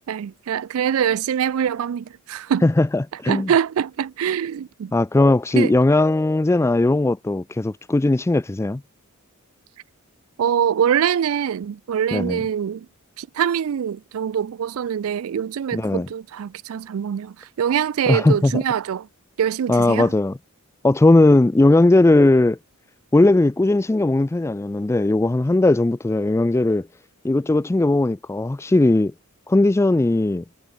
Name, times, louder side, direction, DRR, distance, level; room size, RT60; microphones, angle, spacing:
voice 1, 0.1-2.7 3.3-4.9 5.6-5.7 10.4-12.9 13.2-19.1 19.4-20.1, right 8 dB, 70° right, 0.4 m, -24 dB
voice 2, 2.6-3.5 4.9-8.8 12.1-12.4 15.7-16.1 18.1-18.6 19.7-20.3 20.8-22.6 23.1-26.9 27.2-29.1 29.5-30.4, left 2 dB, 15° left, 0.3 m, -18 dB
head